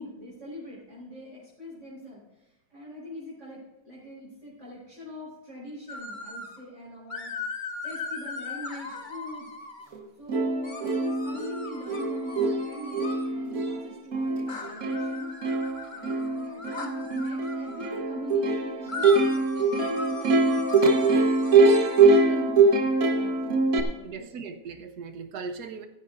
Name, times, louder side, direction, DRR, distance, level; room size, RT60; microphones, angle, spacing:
voice 1, 0.0-2.2 2.7-7.3 7.8-9.5 10.2-20.6 21.1-24.4, left 1 dB, 45° right, -8 dB, 4.8 m, -43 dB
sound 1, 5.9-6.6 7.1-9.9 10.6-13.3 14.5-17.9 18.9-22.1, left 3 dB, 30° left, 1.3 m, -39 dB
Plucked string instrument, 9.9-10.0 10.3-23.8, right 3 dB, 60° right, 1.7 m, -23 dB
voice 2, 24.0-25.9, right 5 dB, 80° right, 7 dB, 1.5 m, -38 dB
16.0 x 15.0 x 2.6 m, 1.0 s
omnidirectional pair, 1.7 m